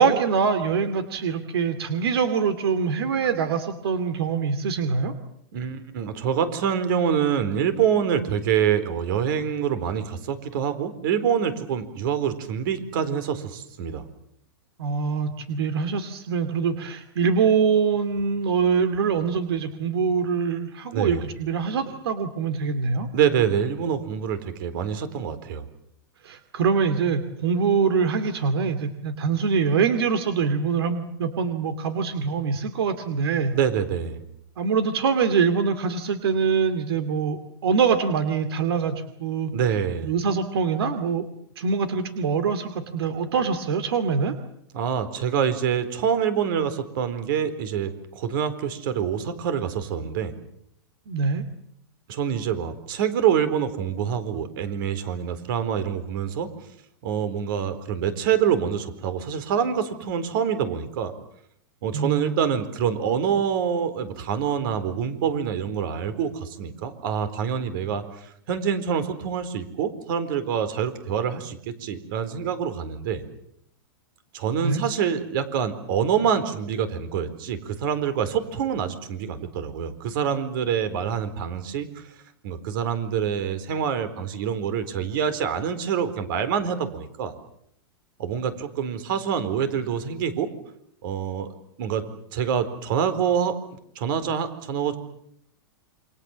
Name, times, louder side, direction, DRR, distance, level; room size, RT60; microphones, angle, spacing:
voice 1, 0.0-5.1 14.8-23.1 26.2-33.5 34.6-39.5 40.0-41.2 41.6-44.3 51.1-51.4 61.9-62.3 74.6-74.8, right 5 dB, 75° right, 10 dB, 2.5 m, -24 dB
voice 2, 5.5-14.0 20.9-21.3 23.1-25.7 33.5-34.2 39.5-40.1 44.7-50.3 52.1-56.5 57.0-61.1 61.8-68.0 68.5-73.2 74.3-82.0 82.4-87.3 88.2-90.5 91.0-91.5 91.8-92.0 92.3-95.0, right 8 dB, 60° right, 11 dB, 4.2 m, -26 dB
28.5 x 25.0 x 7.3 m, 0.72 s
hypercardioid pair, 135°, 13 cm